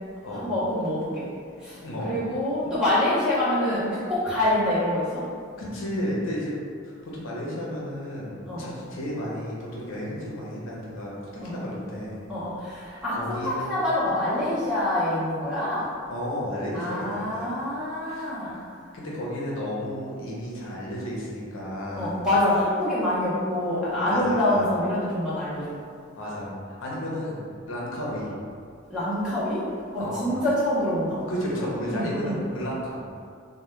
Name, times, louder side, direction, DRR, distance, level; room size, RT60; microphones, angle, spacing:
voice 1, 0.3-1.3 1.6-5.2 8.5-8.6 11.4-11.5 12.3-15.9 16.7-18.6 22.0-25.7 28.9-29.6 29.9-31.2 31.9-32.4, left 1 dB, 5° right, -11 dB, 0.6 m, -26 dB
voice 2, 1.8-2.1 5.6-6.6 6.8-12.2 12.9-13.7 16.1-17.5 18.0-18.3 18.9-22.3 24.0-24.6 26.2-28.3 30.0-30.3 31.3-33.0, equal, 75° left, -5 dB, 0.6 m, -32 dB
2.1 x 2.1 x 3.0 m, 2.2 s
head